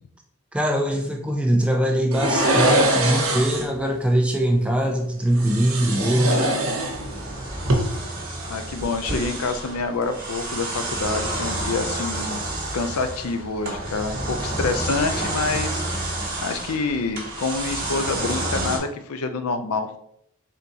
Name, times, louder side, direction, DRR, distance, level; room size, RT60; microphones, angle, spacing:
voice 1, 0.5-6.4, right 1 dB, 5° right, 3 dB, 0.3 m, -22 dB
sound 1, 2.1-3.8 5.3-7.3 7.6-7.7, right 1 dB, 75° right, 0.9 m, -22 dB
sound 2, 6.7-18.8, right 1 dB, 40° right, 1.1 m, -29 dB
voice 2, 8.5-12.4 12.7-20.0, left 4 dB, 85° left, 8 dB, 0.4 m, -27 dB
3.8 x 3.6 x 2.7 m, 0.73 s
head